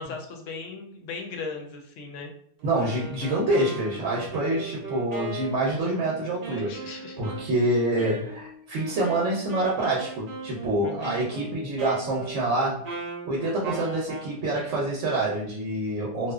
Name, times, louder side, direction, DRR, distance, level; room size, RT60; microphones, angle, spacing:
voice 1, 0.0-2.3 6.5-7.6 10.8-11.3, left 4 dB, 75° left, 2 dB, 0.9 m, -38 dB
Wind instrument woodwind instrument, 2.6-14.4, right 3 dB, 50° right, 0.5 m, -38 dB
voice 2, 2.6-12.9 13.2-16.3, right 1 dB, 75° right, -3 dB, 0.9 m, -27 dB
2.8 x 2.1 x 2.3 m, 0.65 s
omnidirectional pair, 1.3 m